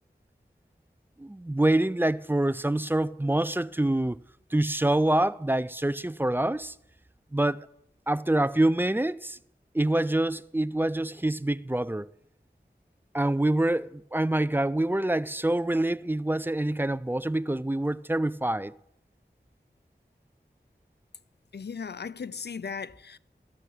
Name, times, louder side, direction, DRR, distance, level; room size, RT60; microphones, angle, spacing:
voice 1, 1.2-4.2 4.5-6.7 7.3-7.7 8.1-9.4 9.7-12.1 13.1-18.7, right 1 dB, 10° right, 0.3 m, -26 dB
voice 2, 21.5-23.2, left 6 dB, 65° left, 0.4 m, -37 dB
13.5 x 6.1 x 6.8 m
wide cardioid pair, 40°, 19 cm